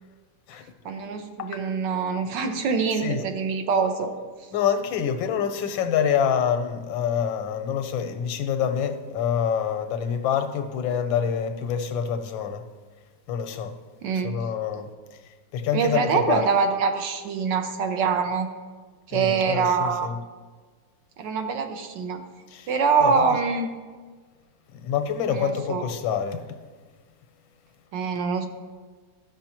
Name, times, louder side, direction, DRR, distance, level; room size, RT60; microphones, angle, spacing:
voice 1, 0.8-4.1 14.0-14.3 15.7-18.5 19.1-20.1 21.2-22.2 22.7-23.7 25.3-25.8 27.9-28.5, right 5 dB, 75° right, 1.4 m, -24 dB
voice 2, 1.4-1.7 3.0-3.2 4.5-12.6 13.3-13.7 14.2-14.9 15.5-16.4 19.1-20.2 22.5-22.7 23.0-23.3 24.7-26.4, left 8 dB, 90° left, 1.4 m, -26 dB
14.0 x 6.0 x 2.9 m
omnidirectional pair, 2.1 m